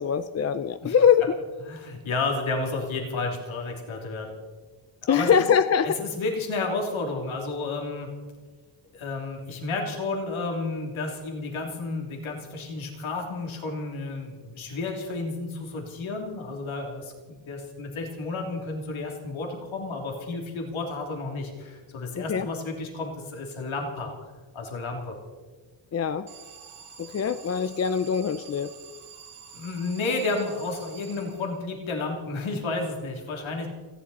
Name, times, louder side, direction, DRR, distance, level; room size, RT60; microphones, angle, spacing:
voice 1, 0.0-1.3 5.1-6.0 22.1-22.5 25.9-26.3 27.0-28.7, left 7 dB, 35° left, 12 dB, 0.5 m, -23 dB
voice 2, 1.7-4.3 5.0-5.5 6.0-8.1 8.9-24.1 24.5-25.2 29.5-33.7, left 3 dB, 80° left, 1 dB, 3.2 m, -31 dB
Alarm, 26.3-31.8, right 7 dB, 85° right, 2.2 m, -48 dB
30.0 x 11.0 x 4.2 m, 1.4 s
wide cardioid pair, 155°, 47 cm